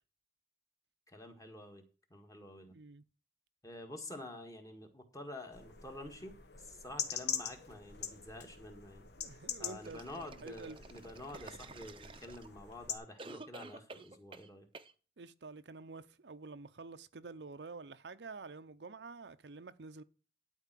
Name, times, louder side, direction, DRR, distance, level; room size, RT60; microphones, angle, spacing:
voice 1, 1.1-1.8 2.1-2.8 3.6-9.1 9.6-14.7, left 1 dB, 20° left, 1.7 m, -49 dB
voice 2, 2.7-3.0 9.2-10.8 15.2-20.0, right 4 dB, 80° right, 0.7 m, -49 dB
sound 1, 5.5-13.0, left 8 dB, 70° left, 1.2 m, -44 dB
sound 2, 9.8-12.7 13.2-14.5 14.7-14.9, right 3 dB, 30° right, 0.7 m, -51 dB
12.0 x 4.5 x 7.5 m
head